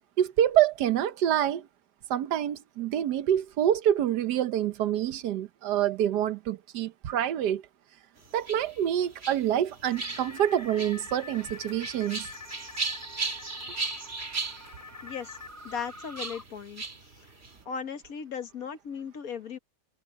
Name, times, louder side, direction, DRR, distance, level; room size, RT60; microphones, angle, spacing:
voice 1, 0.2-1.7 2.1-7.6 8.3-12.3, right 10 dB, 75° right, 1.4 m, -26 dB
sound 1, 8.2-17.6, right 3 dB, 35° right, 2.8 m, -38 dB
sound 2, 9.9-16.4, left 3 dB, 10° left, 2.4 m, -45 dB
voice 2, 15.0-15.4 15.6-16.8 17.6-19.6, left 7 dB, 60° left, 1.7 m, -37 dB
omnidirectional pair, 1.8 m